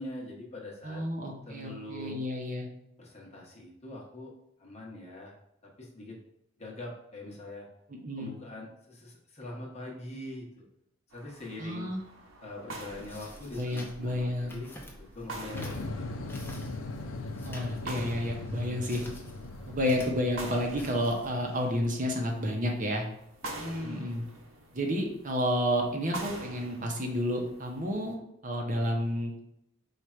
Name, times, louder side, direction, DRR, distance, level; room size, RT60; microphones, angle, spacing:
voice 1, 0.0-1.0 1.5-2.2 3.0-4.3 4.6-5.4 5.6-6.2 6.6-7.7 8.2-10.6 11.1-11.9 12.4-15.9 23.4-24.2 28.8-29.0, left 1 dB, 35° left, -2 dB, 1.0 m, -43 dB
voice 2, 0.8-2.7 7.9-8.3 11.6-12.0 13.6-14.6 17.4-19.1 19.7-23.0 23.8-24.2 24.7-29.3, equal, 40° right, 1 dB, 0.8 m, -31 dB
sound 1, 11.1-28.1, right 2 dB, 85° right, 0.9 m, -46 dB
sound 2, 12.9-21.3, left 1 dB, 10° left, 0.7 m, -49 dB
sound 3, 15.5-22.6, left 2 dB, 75° left, 0.6 m, -40 dB
4.9 x 2.4 x 4.3 m, 0.78 s
head